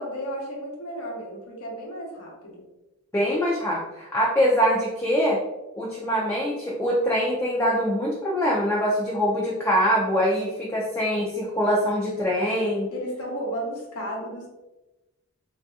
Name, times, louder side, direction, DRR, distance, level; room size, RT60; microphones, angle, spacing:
voice 1, 0.0-2.6 12.9-14.5, equal, 80° left, -2 dB, 0.8 m, -33 dB
voice 2, 3.1-5.4 5.8-12.9, equal, 10° left, -5 dB, 0.4 m, -23 dB
3.3 x 2.6 x 2.3 m, 1.0 s
head